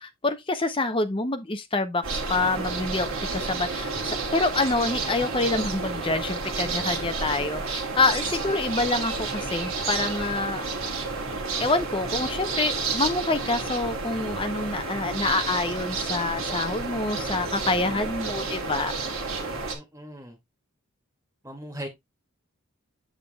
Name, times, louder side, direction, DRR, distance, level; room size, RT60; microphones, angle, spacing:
voice 1, 0.0-10.6 11.6-18.9, left 3 dB, 25° left, 0.7 m, -27 dB
sound 1, 2.0-19.7, right 4 dB, 65° right, 1.7 m, -30 dB
voice 2, 16.5-18.1 19.7-20.4 21.4-21.9, equal, 15° right, 2.3 m, -42 dB
7.4 x 6.7 x 2.3 m
head